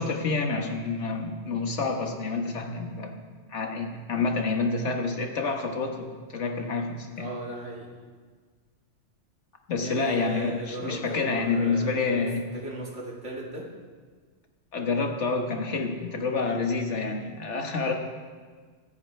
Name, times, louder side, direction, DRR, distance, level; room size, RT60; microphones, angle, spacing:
voice 1, 0.0-3.2 3.5-7.3 9.7-12.5 14.7-17.9, left 4 dB, 70° left, 3 dB, 1.7 m, -28 dB
voice 2, 7.1-7.9 9.8-13.7, right 1 dB, 70° right, -2 dB, 2.7 m, -37 dB
23.0 x 9.8 x 3.4 m, 1.5 s
omnidirectional pair, 1.2 m